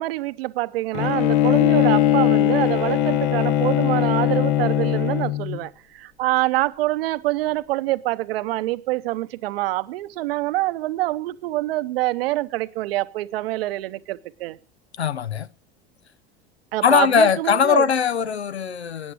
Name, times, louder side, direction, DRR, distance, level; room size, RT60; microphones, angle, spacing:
voice 1, 0.0-14.6 16.7-17.9, right 18 dB, 65° right, 0.8 m, -25 dB
Bowed string instrument, 0.9-5.6, left 12 dB, 55° left, 1.0 m, -20 dB
voice 2, 15.0-15.5 16.8-19.1, left 7 dB, 90° left, 0.7 m, -20 dB
13.5 x 9.5 x 6.2 m
hypercardioid pair, 80°, 31 cm